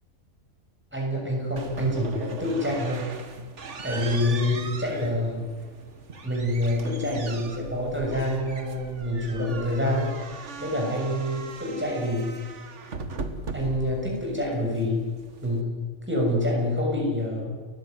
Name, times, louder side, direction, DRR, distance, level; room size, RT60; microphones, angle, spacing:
voice 1, 0.9-3.1 3.8-5.5 6.2-10.1 10.6-12.3 13.5-15.0 15.4-15.8 16.1-17.6, left 1 dB, 10° right, -2 dB, 6.5 m, -27 dB
sound 1, 1.6-15.6, right 4 dB, 60° right, 1.9 m, -39 dB
30.0 x 15.5 x 9.3 m, 1.5 s
omnidirectional pair, 1.4 m